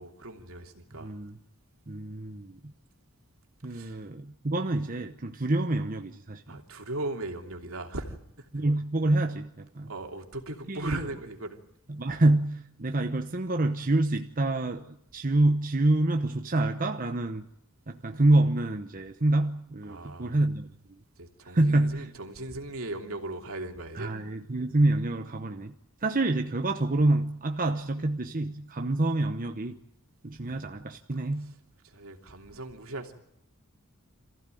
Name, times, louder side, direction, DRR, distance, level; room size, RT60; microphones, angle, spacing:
voice 1, 0.0-1.2 3.7-4.0 6.5-8.6 9.9-11.6 19.9-20.4 21.2-24.1 30.4-30.7 31.8-33.1, right 2 dB, 75° right, 4 dB, 3.0 m, -38 dB
voice 2, 1.0-1.4 1.9-2.7 3.6-6.6 8.5-9.9 10.7-11.0 11.9-17.5 17.9-21.0 21.4-22.1 23.9-25.7 26.0-29.8 30.2-31.5, right 2 dB, 40° right, 5 dB, 1.0 m, -27 dB
27.0 x 15.5 x 9.2 m, 0.81 s
head